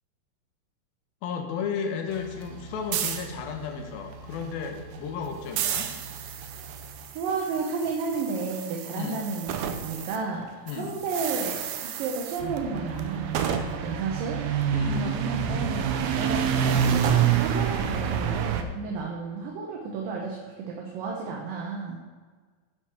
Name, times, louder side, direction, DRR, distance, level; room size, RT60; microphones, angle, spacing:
voice 1, 1.2-5.9 8.9-9.2 10.7-10.9 14.7-15.2, left 6 dB, 80° left, 4 dB, 2.8 m, -33 dB
sound 1, 2.1-10.2 10.4-18.6, right 8 dB, 90° right, 2.6 m, -29 dB
voice 2, 7.2-14.4 14.6-22.0, right 4 dB, 75° right, -1 dB, 2.6 m, -32 dB
9.8 x 6.5 x 4.5 m, 1.5 s
omnidirectional pair, 4.2 m